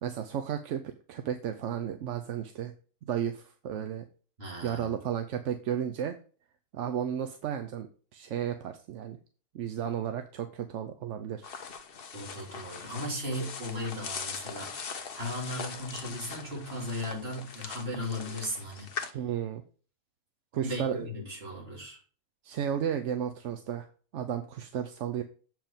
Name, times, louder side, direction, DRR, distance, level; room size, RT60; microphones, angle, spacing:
voice 1, 0.0-2.7 3.0-4.0 4.6-6.2 6.7-9.2 9.5-11.5 19.1-19.6 20.5-21.1 22.4-23.9 24.1-25.2, right 9 dB, 65° right, 0.9 m, -33 dB
voice 2, 4.4-4.9 12.1-19.2 20.5-22.0, left 1 dB, 45° right, 3.0 m, -37 dB
sound 1, 11.4-19.1, left 6 dB, 45° left, 0.9 m, -41 dB
7.5 x 4.8 x 5.2 m
omnidirectional pair, 1.5 m